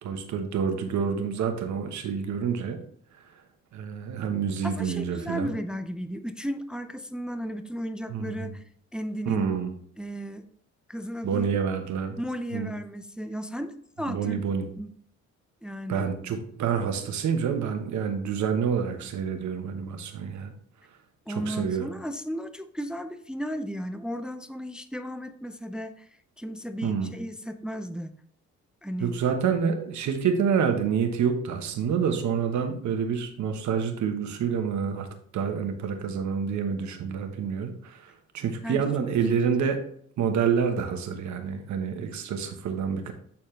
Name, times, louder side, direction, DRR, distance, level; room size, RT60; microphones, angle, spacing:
voice 1, 0.0-2.8 3.7-5.5 8.1-8.5 9.3-9.7 11.2-12.2 12.5-12.7 14.0-14.7 15.9-20.5 21.3-21.9 26.8-27.1 29.0-35.1 35.3-39.8 40.2-43.1, right 7 dB, 70° right, 6 dB, 1.2 m, -28 dB
voice 2, 4.6-8.6 8.9-9.5 10.0-10.5 10.9-11.6 12.2-14.4 14.8-14.9 15.6-16.1 21.3-26.1 26.4-28.1 28.8-29.1 38.6-38.9, equal, 5° right, 9 dB, 0.4 m, -34 dB
8.9 x 4.2 x 3.2 m, 0.63 s
cardioid pair, 90°, 30 cm